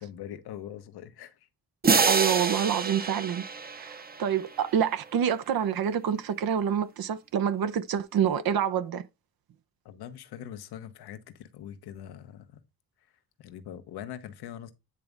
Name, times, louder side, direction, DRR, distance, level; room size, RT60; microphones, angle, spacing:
voice 1, 0.0-1.5 9.8-12.6 13.4-14.7, left 10 dB, 90° left, 1.1 m, -42 dB
sound 1, 1.8-4.7, right 5 dB, 25° right, 0.8 m, -27 dB
voice 2, 2.1-3.4 3.8-9.0, right 8 dB, 70° right, 0.9 m, -27 dB
9.5 x 3.5 x 5.1 m
cardioid pair, 85°, 37 cm